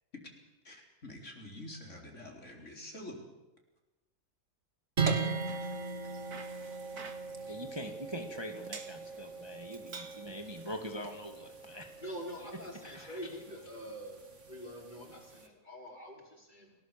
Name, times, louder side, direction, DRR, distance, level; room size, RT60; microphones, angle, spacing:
voice 1, 0.6-3.2, left 1 dB, 50° left, 1 dB, 4.4 m, -47 dB
sound 1, 5.0-15.5, right 5 dB, 50° right, 2.9 m, -39 dB
Bicycle, 5.2-13.5, right 4 dB, 75° right, 2.4 m, -53 dB
voice 2, 7.5-11.9 12.5-13.2, equal, 15° right, 4 dB, 1.8 m, -43 dB
voice 3, 12.0-16.7, equal, 30° left, 1 dB, 5.1 m, -45 dB
29.5 x 17.5 x 7.4 m, 1.0 s
omnidirectional pair, 1.6 m